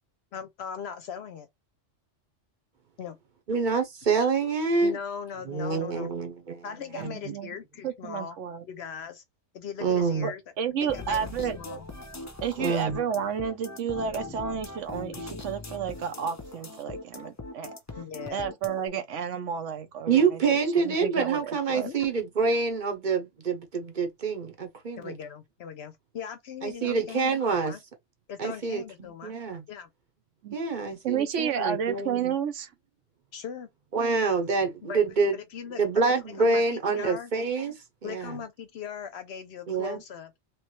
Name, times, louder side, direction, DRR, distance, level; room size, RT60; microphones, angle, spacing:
voice 1, 0.3-1.5 3.0-3.2 4.8-6.1 6.6-8.4 8.6-9.2 9.5-10.4 10.8-11.9 12.6-12.8 18.0-18.5 21.8-22.1 25.0-27.8 28.3-29.3 29.7-29.9 33.3-33.7 34.8-35.8 36.4-37.3 38.0-40.3, left 7 dB, 65° left, 0.8 m, -39 dB
voice 2, 3.5-5.0 5.5-6.6 7.0-7.2 9.8-10.3 12.6-13.0 20.1-25.2 26.6-27.7 28.4-29.6 30.5-32.3 33.9-35.4 35.8-37.7 38.0-38.4 39.7-40.0, right 4 dB, 45° right, 0.9 m, -26 dB
voice 3, 7.0-7.5 7.8-8.6 10.2-11.6 12.4-17.7 18.3-21.9 30.4-30.6 31.0-32.7, right 7 dB, 75° right, 1.0 m, -31 dB
sound 1, 10.9-18.9, left 2 dB, 25° left, 0.4 m, -40 dB
3.2 x 3.0 x 3.0 m
omnidirectional pair, 1.3 m